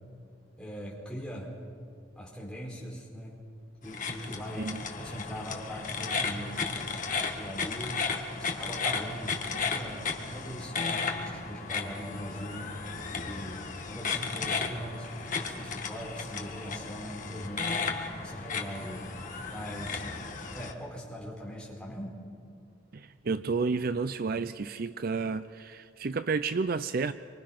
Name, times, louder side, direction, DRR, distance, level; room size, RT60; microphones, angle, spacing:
voice 1, 0.6-1.5 2.1-3.4 3.8-7.0 7.3-8.0 8.4-12.9 13.2-17.9 18.1-19.1 19.5-20.0 20.5-22.2, equal, 5° left, 4.6 m, -40 dB
sound 1, 3.8-20.7, left 5 dB, 40° left, 1.7 m, -34 dB
voice 2, 22.9-27.1, right 4 dB, 45° right, 0.5 m, -31 dB
26.0 x 24.5 x 5.9 m
head